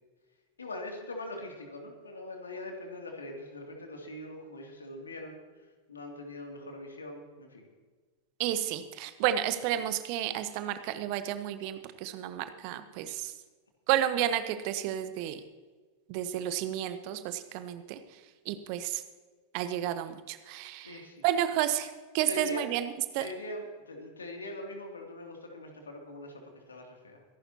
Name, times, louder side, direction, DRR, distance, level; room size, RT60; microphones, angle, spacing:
voice 1, 0.6-5.4 5.9-7.7 9.7-9.8 20.8-21.2 22.2-22.6 23.2-27.2, left 2 dB, 75° left, 2 dB, 2.8 m, -42 dB
voice 2, 8.4-13.3 13.9-15.4 16.1-18.0 18.4-19.0 19.5-22.8 23.1-23.3, right 11 dB, 45° right, 11 dB, 1.1 m, -31 dB
24.0 x 11.5 x 2.9 m, 1.4 s
figure-of-eight pair, 90°, 0 cm